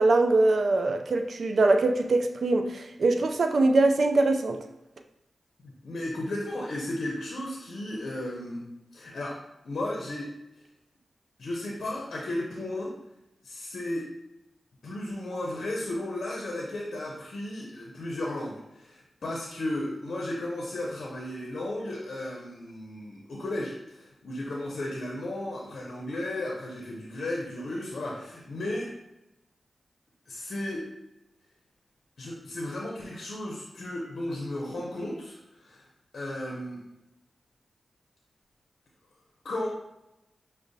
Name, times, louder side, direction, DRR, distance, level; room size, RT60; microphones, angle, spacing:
voice 1, 0.0-4.6, right 2 dB, 70° right, 6 dB, 0.3 m, -23 dB
voice 2, 5.6-9.4 9.7-10.3 11.4-13.0 13.4-14.1 14.8-28.9 30.3-30.9 32.2-35.9 36.1-36.8 39.4-39.7, left 1 dB, 75° left, -2 dB, 0.6 m, -34 dB
6.0 x 2.1 x 2.6 m, 0.93 s
cardioid pair, 45°, 0 cm